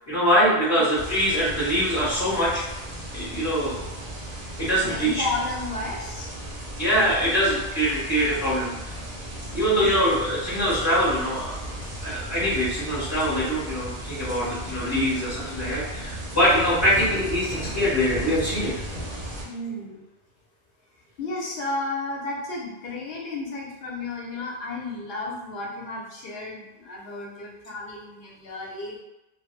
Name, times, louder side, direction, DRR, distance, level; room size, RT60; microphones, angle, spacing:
voice 1, 0.1-2.6 3.1-3.9 4.6-5.2 6.8-8.9 9.5-11.6 12.0-18.7, equal, 25° left, -11 dB, 0.7 m, -23 dB
sound 1, 0.9-19.5, right 1 dB, 50° right, 0.5 m, -35 dB
voice 2, 4.8-6.3 9.4-10.1 17.7-17.8 19.4-20.0 21.2-29.0, left 2 dB, 65° left, -3 dB, 0.8 m, -33 dB
2.1 x 2.0 x 3.0 m, 0.97 s
omnidirectional pair, 1.1 m